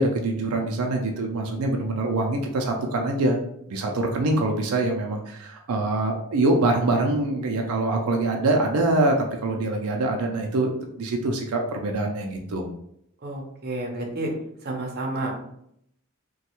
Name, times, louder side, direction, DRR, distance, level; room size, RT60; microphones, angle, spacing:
voice 1, 0.0-3.4 3.7-12.7, right 2 dB, 90° right, 2 dB, 0.5 m, -24 dB
voice 2, 13.2-14.3 14.6-15.4, right 2 dB, 45° right, 0 dB, 0.6 m, -30 dB
3.1 x 2.2 x 2.9 m, 0.73 s
head